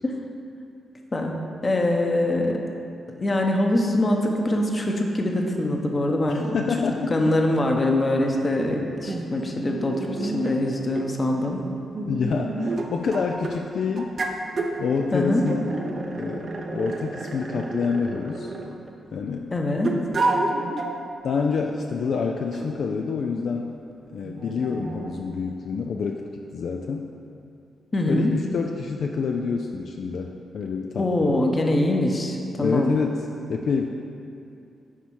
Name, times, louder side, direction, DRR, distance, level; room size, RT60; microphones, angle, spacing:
voice 1, 1.6-2.6 3.2-6.5 7.1-11.6 15.1-15.4 19.5-19.9 27.9-28.3 31.0-32.9, left 1 dB, 35° left, 1 dB, 0.9 m, -23 dB
voice 2, 6.3-7.4 12.1-14.1 14.8-15.7 16.2-18.5 19.1-19.5 21.2-23.7 24.1-26.2 26.5-27.1 28.1-31.3 32.6-33.9, left 5 dB, 70° left, 2 dB, 0.3 m, -27 dB
sound 1, 8.2-8.3 9.1-10.6 11.0-11.1 11.9-13.6 14.0-14.8 15.5-18.9 19.8-21.0 21.5-21.7 22.5-22.7 24.2-25.2, right 2 dB, 55° right, 0.6 m, -30 dB
7.4 x 4.2 x 4.7 m, 2.6 s
supercardioid pair, 50°, 0 cm